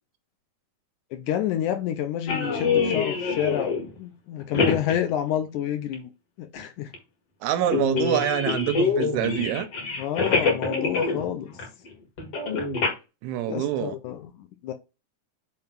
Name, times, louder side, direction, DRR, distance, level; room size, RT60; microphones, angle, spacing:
voice 1, 1.1-6.1 6.4-6.9 10.0-11.5 13.5-14.3 14.6-14.7, left 10 dB, 80° left, 2.0 m, -29 dB
sound 1, 2.3-3.9 4.4-5.0 5.9-6.0 6.6-6.7 6.9-7.0 7.7-11.3 11.6-11.9 12.2-12.9, left 4 dB, 50° left, 2.3 m, -25 dB
voice 2, 7.4-9.7 13.2-14.0, right 11 dB, 80° right, 1.7 m, -26 dB
5.3 x 3.9 x 5.9 m
omnidirectional pair, 3.8 m